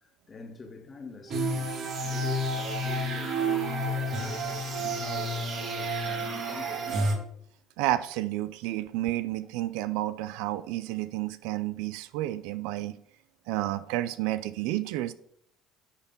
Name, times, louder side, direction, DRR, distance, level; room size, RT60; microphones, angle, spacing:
voice 1, 0.3-6.8, left 3 dB, 30° left, 1.6 m, -44 dB
sound 1, 1.3-7.1, right 1 dB, 55° right, 1.9 m, -30 dB
voice 2, 7.8-12.9 13.5-15.1, right 15 dB, 80° right, 0.4 m, -30 dB
9.7 x 3.7 x 5.3 m
supercardioid pair, 90°, 0 cm